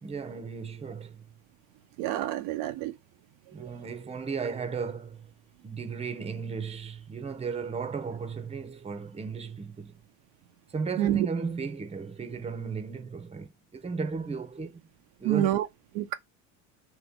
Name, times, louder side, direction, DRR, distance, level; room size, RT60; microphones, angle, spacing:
voice 1, 0.0-1.2 3.5-5.3 5.6-9.9 10.7-14.8 15.2-15.6, right 5 dB, 15° right, 0.8 m, -35 dB
voice 2, 2.0-2.9 3.6-3.7 11.0-11.3 15.2-15.7 15.9-16.1, right 13 dB, 65° right, 0.6 m, -27 dB
3.0 x 2.9 x 3.6 m
supercardioid pair, 85°, 38 cm